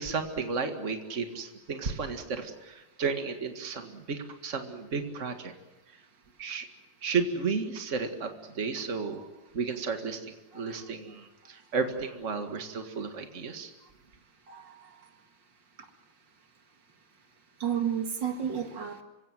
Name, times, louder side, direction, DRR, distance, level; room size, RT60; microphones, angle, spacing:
voice 1, 0.0-5.5 6.4-6.7 7.0-9.2 9.5-13.7, right 5 dB, 40° right, 6 dB, 2.2 m, -33 dB
voice 2, 14.5-15.0 17.6-19.0, right 8 dB, 75° right, 6 dB, 2.7 m, -32 dB
28.0 x 17.0 x 9.2 m, 1.1 s
omnidirectional pair, 2.0 m